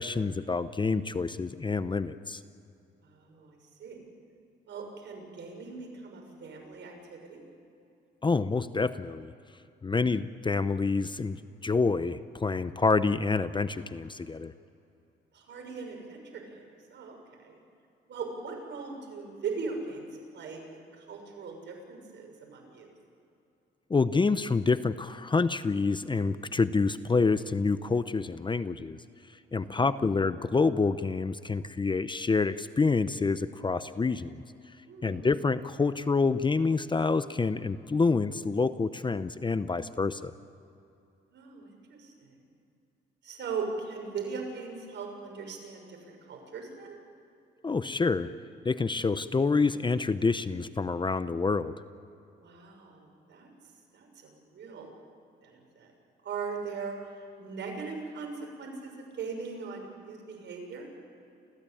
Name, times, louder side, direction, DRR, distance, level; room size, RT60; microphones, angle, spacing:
voice 1, 0.0-2.4 8.2-9.3 9.8-14.5 23.9-29.0 29.5-34.4 35.0-40.3 47.6-48.3 48.6-51.7, left 4 dB, 25° left, 13 dB, 0.8 m, -27 dB
voice 2, 3.0-4.0 4.7-7.4 15.3-17.6 18.1-20.1 20.3-22.9 29.5-29.9 34.9-35.2 41.3-42.4 43.2-46.9 52.4-53.5 53.9-54.9 55.4-55.9 56.2-57.0 57.4-58.3 58.6-60.9, right 5 dB, 65° right, 2 dB, 6.7 m, -40 dB
29.0 x 15.0 x 8.7 m, 2.7 s
cardioid pair, 90°, 20 cm